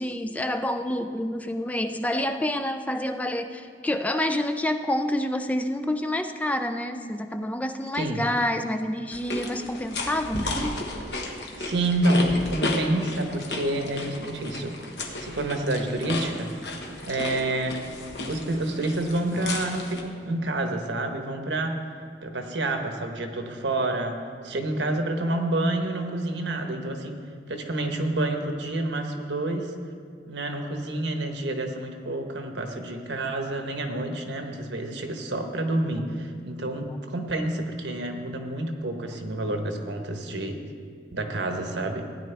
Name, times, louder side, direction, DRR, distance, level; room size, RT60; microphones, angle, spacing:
voice 1, 0.0-10.8, left 1 dB, 10° left, 7 dB, 0.4 m, -28 dB
sound 1, 9.1-20.0, left 2 dB, 65° left, 1.2 m, -33 dB
voice 2, 11.4-14.8 15.2-17.8 18.3-21.8 22.2-27.2 27.5-29.7 30.3-40.6 41.1-42.1, right 1 dB, 85° right, 5 dB, 1.1 m, -28 dB
16.0 x 9.7 x 3.4 m, 2.1 s
head